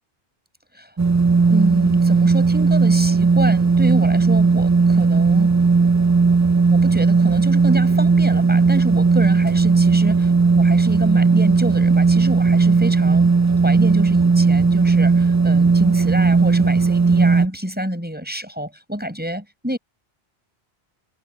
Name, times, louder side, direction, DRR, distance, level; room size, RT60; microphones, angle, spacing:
sound 1, 1.0-17.5, right 4 dB, 25° right, 0.4 m, -16 dB
voice 1, 1.5-5.6 6.7-13.3 13.6-19.8, equal, 10° right, 6.8 m, -27 dB
omnidirectional pair, 1.0 m